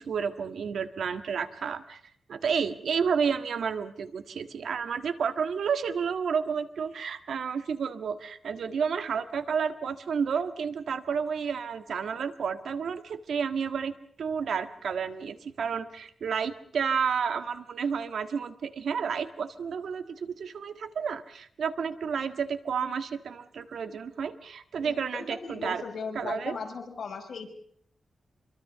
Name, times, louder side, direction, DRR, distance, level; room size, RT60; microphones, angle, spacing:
voice 1, 0.0-2.0 2.3-25.8 26.1-26.5, right 6 dB, 80° right, 10 dB, 1.7 m, -31 dB
voice 2, 24.8-27.5, left 5 dB, 60° left, 3 dB, 5.9 m, -38 dB
26.5 x 23.5 x 6.8 m, 0.63 s
wide cardioid pair, 140°, 0 cm